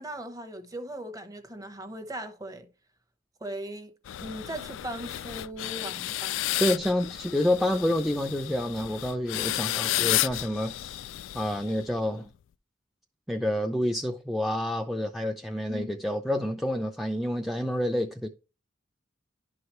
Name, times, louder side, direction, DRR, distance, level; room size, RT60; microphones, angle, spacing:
voice 1, 0.0-2.7 3.4-3.9 4.2-6.4 15.7-16.0, right 1 dB, 20° right, 1.0 m, -38 dB
sound 1, 4.1-12.0, left 15 dB, 90° left, 0.3 m, -32 dB
voice 2, 6.6-10.9 11.3-12.3 13.3-18.3, left 1 dB, ahead, 0.5 m, -28 dB
11.5 x 4.8 x 3.1 m
head